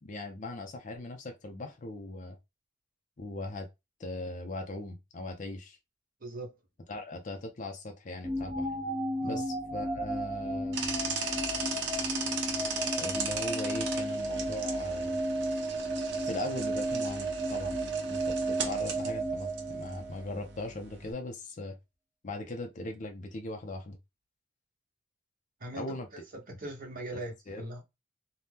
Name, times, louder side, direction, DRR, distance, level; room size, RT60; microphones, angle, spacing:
voice 1, 0.0-2.4 3.2-3.7 4.0-5.8 6.9-8.7 9.2-10.8 13.0-15.2 16.2-17.8 18.1-21.8 22.2-24.0 25.7-26.1 27.1-27.2 27.5-27.6, left 2 dB, 40° left, 0.5 m, -39 dB
voice 2, 6.2-6.6 9.2-9.4 25.6-25.9 26.1-27.8, right 1 dB, 45° right, 1.0 m, -40 dB
sound 1, 8.2-20.3, right 1 dB, 20° right, 0.8 m, -33 dB
sound 2, 10.7-21.1, right 5 dB, 65° right, 0.7 m, -37 dB
2.7 x 2.2 x 3.4 m
head